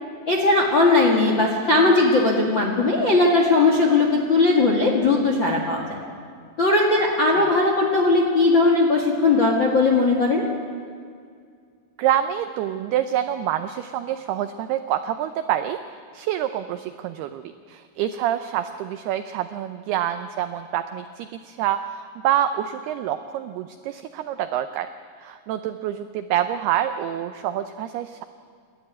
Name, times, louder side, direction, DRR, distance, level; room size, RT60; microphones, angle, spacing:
voice 1, 0.3-6.0 6.6-10.4, left 3 dB, 55° left, 1 dB, 1.3 m, -19 dB
voice 2, 12.0-15.8 16.1-24.9 25.2-28.2, right 11 dB, 85° right, 9 dB, 2.2 m, -27 dB
28.5 x 12.5 x 9.6 m, 2.1 s
omnidirectional pair, 5.4 m